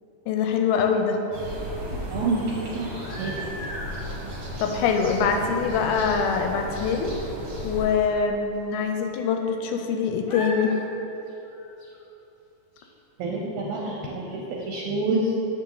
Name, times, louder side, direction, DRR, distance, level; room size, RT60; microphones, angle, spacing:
voice 1, 0.3-1.2 4.6-7.1 7.6-10.7, left 6 dB, 80° left, 4 dB, 2.0 m, -24 dB
sound 1, 0.8-1.8 2.7-4.0 4.9-5.1 5.4-5.5 6.0-6.1 6.3-6.4 8.1-8.2 9.0-9.9 10.2-10.8 11.2-12.0 12.8-12.9 13.8-13.9 14.3-14.4 14.6-14.7, equal, 50° left, 1.5 m, -39 dB
sound 2, 1.3-7.8, equal, 45° right, 1.4 m, -35 dB
voice 2, 2.1-2.5 2.7-3.4 5.1-5.2 13.2-15.3, right 3 dB, 75° right, -2 dB, 1.9 m, -28 dB
7.4 x 5.9 x 3.8 m, 3.0 s
omnidirectional pair, 3.8 m